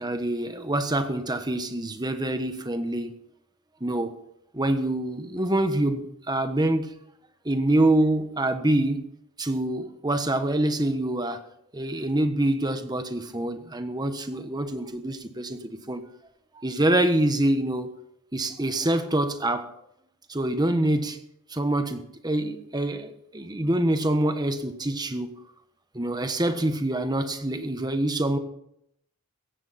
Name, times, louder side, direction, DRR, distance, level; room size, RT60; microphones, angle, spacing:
voice 1, 0.0-3.1 3.8-4.2 4.5-6.9 7.4-9.1 9.4-11.5 11.7-16.0 16.5-17.9 18.3-19.7 20.3-21.2 21.5-25.4 25.9-28.4, right 1 dB, 20° right, 8 dB, 1.2 m, -26 dB
17.0 x 15.0 x 4.2 m, 0.75 s
head